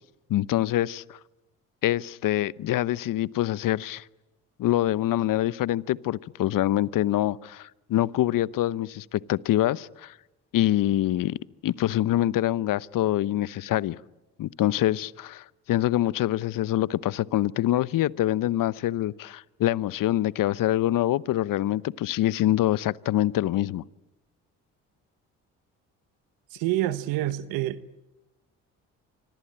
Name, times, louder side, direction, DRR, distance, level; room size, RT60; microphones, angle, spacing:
voice 1, 0.3-1.2 1.8-4.0 4.6-10.1 10.5-11.4 11.6-14.0 14.4-23.8, left 14 dB, 65° left, 0.9 m, -25 dB
voice 2, 26.5-28.0, right 14 dB, 80° right, 1.1 m, -28 dB
25.5 x 25.5 x 8.8 m
hypercardioid pair, 55°, 36 cm